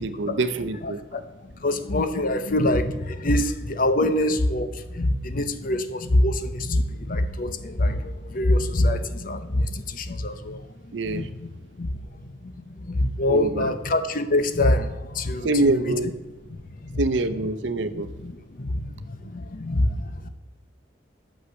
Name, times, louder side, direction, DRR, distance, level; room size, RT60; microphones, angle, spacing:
voice 1, 0.0-1.0 4.0-4.1 10.9-11.3 13.3-13.7 15.4-16.1 17.0-18.1, right 2 dB, 75° right, 11 dB, 0.7 m, -25 dB
voice 2, 0.8-11.5 11.8-16.0 16.5-17.0 17.9-20.3, left 1 dB, 50° left, 10 dB, 0.8 m, -25 dB
11.5 x 6.5 x 6.4 m, 1.1 s
head